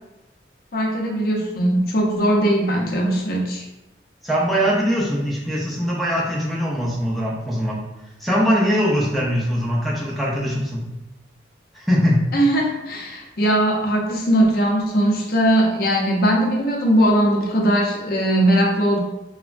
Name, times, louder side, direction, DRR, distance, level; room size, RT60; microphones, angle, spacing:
voice 1, 0.7-3.6 12.3-19.0, right 1 dB, 55° left, -1 dB, 0.5 m, -19 dB
voice 2, 4.2-7.8 8.2-10.8 11.7-12.2, equal, ahead, -6 dB, 0.5 m, -21 dB
3.4 x 2.0 x 2.4 m, 0.97 s
head